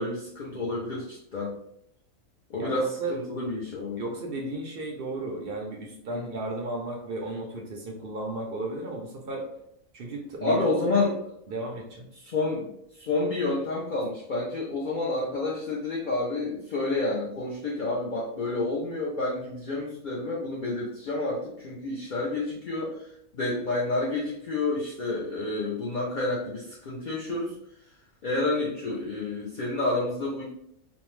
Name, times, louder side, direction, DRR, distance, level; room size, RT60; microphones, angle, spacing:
voice 1, 0.0-1.5 2.5-4.0 6.1-6.3 10.4-11.1 12.2-27.5 28.2-30.4, left 2 dB, 60° left, -4 dB, 0.5 m, -29 dB
voice 2, 2.6-3.1 4.0-9.5 9.9-11.1 11.5-12.1, right 2 dB, 65° right, 0 dB, 0.5 m, -34 dB
2.6 x 2.1 x 3.0 m, 0.73 s
omnidirectional pair, 1.4 m